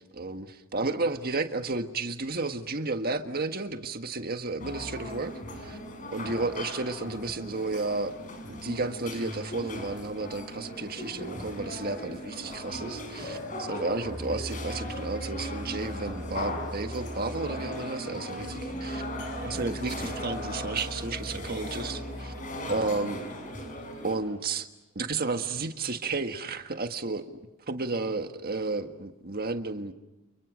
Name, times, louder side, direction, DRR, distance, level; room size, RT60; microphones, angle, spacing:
voice 1, 0.0-5.8 6.1-8.1 8.5-19.0 19.4-22.3 22.7-23.2 24.0-24.7 24.9-27.4 27.7-29.9, right 3 dB, 45° right, 7 dB, 1.7 m, -32 dB
sound 1, 4.6-24.2, left 1 dB, 40° left, 5.6 m, -37 dB
30.0 x 29.0 x 6.4 m, 0.98 s
head